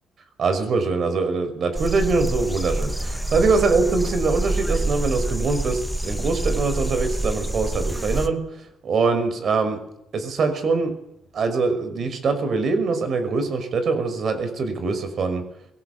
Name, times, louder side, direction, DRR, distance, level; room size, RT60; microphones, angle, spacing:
voice 1, 0.4-8.4 8.8-9.8 10.1-10.9 11.3-15.4, right 4 dB, 55° right, 9 dB, 5.7 m, -23 dB
sound 1, 1.7-8.3, right 1 dB, ahead, 2.2 m, -26 dB
22.5 x 17.5 x 8.5 m, 0.76 s
cardioid pair, 90°, 0 cm